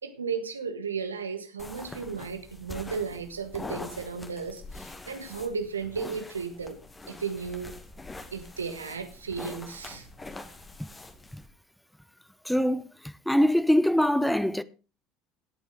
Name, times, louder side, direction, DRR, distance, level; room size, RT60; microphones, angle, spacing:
voice 1, 0.0-6.8 7.1-7.7 8.3-10.1, right 5 dB, 80° right, 1.3 m, -34 dB
sound 1, 1.6-11.5, left 2 dB, 20° left, 2.0 m, -44 dB
voice 2, 12.4-14.6, equal, ahead, 0.6 m, -24 dB
17.5 x 8.2 x 3.8 m
figure-of-eight pair, 65°, 0 cm